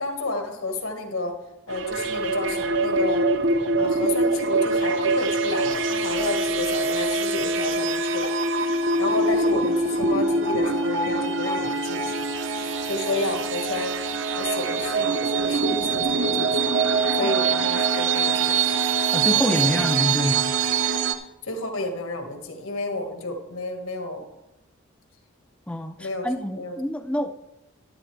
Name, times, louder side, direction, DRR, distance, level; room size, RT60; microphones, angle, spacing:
voice 1, 0.0-1.3 1.7-3.3 3.8-8.3 9.0-12.2 12.9-13.9 14.3-16.7 17.2-18.7 19.3-19.5 21.4-24.2 26.0-26.3 26.5-26.7, left 2 dB, 80° left, 1.7 m, -31 dB
sound 1, 1.7-21.2, right 3 dB, 60° right, 0.7 m, -24 dB
voice 2, 19.1-20.5 25.7-27.3, left 1 dB, 5° left, 0.4 m, -26 dB
12.0 x 11.5 x 3.3 m
head